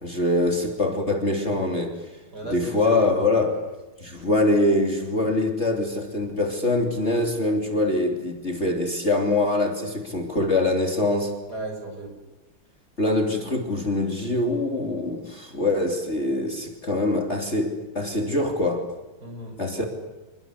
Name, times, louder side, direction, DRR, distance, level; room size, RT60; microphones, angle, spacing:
voice 1, 0.0-1.9 2.4-3.6 4.0-11.3 13.0-18.9 19.6-19.8, left 2 dB, 30° left, 3 dB, 3.3 m, -24 dB
voice 2, 2.3-3.1 11.5-12.2 19.2-19.9, right 2 dB, 45° right, 3 dB, 8.2 m, -34 dB
27.5 x 24.0 x 8.4 m, 1.1 s
omnidirectional pair, 2.4 m